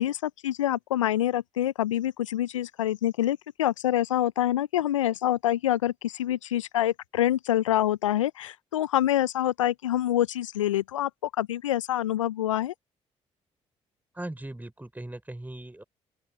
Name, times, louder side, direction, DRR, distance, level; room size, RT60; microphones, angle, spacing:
voice 1, 0.0-11.1 11.4-12.7, left 12 dB, 85° left, 0.6 m, -26 dB
voice 2, 14.1-15.8, right 1 dB, 10° right, 4.7 m, -39 dB
open air
figure-of-eight pair, 45°, 16 cm